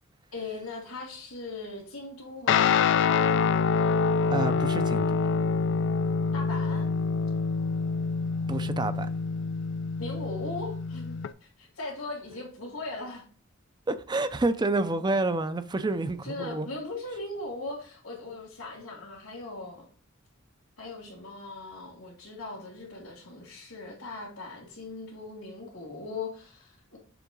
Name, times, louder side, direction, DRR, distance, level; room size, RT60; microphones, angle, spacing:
voice 1, 0.3-2.7 6.3-6.9 10.0-13.2 16.2-19.9 20.8-27.0, left 2 dB, 85° left, 2.3 m, -39 dB
Guitar, 2.5-11.3, left 5 dB, 60° left, 0.3 m, -26 dB
voice 2, 4.3-5.2 8.5-9.1 13.9-16.7, right 2 dB, 20° right, 0.5 m, -28 dB
6.9 x 3.6 x 3.7 m
head